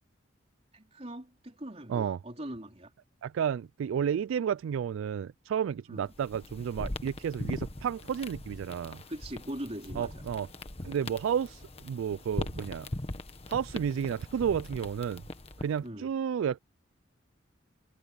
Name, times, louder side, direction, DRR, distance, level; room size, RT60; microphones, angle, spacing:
voice 1, 0.7-2.9 5.9-6.1 9.1-10.2 15.8-16.1, right 1 dB, 30° right, 4.2 m, -41 dB
voice 2, 3.2-9.0 10.0-10.5 10.8-12.9 13.5-15.2 15.6-16.6, right 8 dB, 80° right, 0.3 m, -31 dB
sound 1, 6.1-15.9, left 1 dB, 30° left, 1.4 m, -40 dB
head